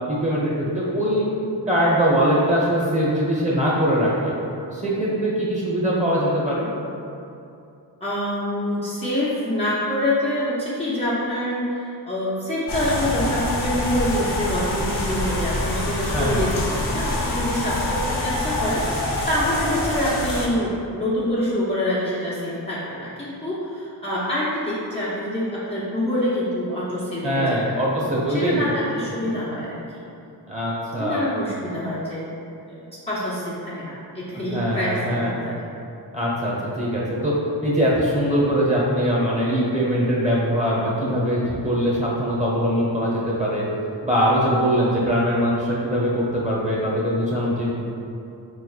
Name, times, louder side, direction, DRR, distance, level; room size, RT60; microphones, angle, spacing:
voice 1, 0.1-1.3 1.7-4.3 4.7-6.7 16.1-16.5 27.2-28.7 30.5-31.2 34.5-35.3 36.1-37.3 37.6-43.7 44.0-47.7, equal, 15° right, -5 dB, 1.0 m, -22 dB
voice 2, 8.0-30.0 31.0-32.2 32.7-35.7, left 1 dB, 15° left, -10 dB, 0.6 m, -26 dB
sound 1, 12.7-20.5, left 1 dB, 60° left, 0.8 m, -25 dB
4.1 x 3.3 x 2.3 m, 2.7 s
cardioid pair, 65°, 46 cm